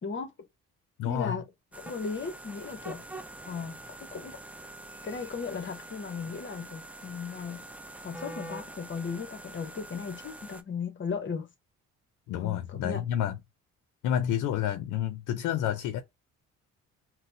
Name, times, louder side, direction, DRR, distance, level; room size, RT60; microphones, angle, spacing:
voice 1, 0.0-0.3 1.0-1.4 1.8-3.0 3.4-4.3 5.0-7.6 8.0-11.5 12.3-13.0, left 5 dB, 40° left, 0.8 m, -36 dB
voice 2, 1.0-1.4 12.3-13.4 14.0-16.0, left 10 dB, 85° left, 0.5 m, -29 dB
sound 1, 1.7-10.6, right 1 dB, 5° right, 0.4 m, -45 dB
3.9 x 2.0 x 2.6 m
cardioid pair, 90°, 30 cm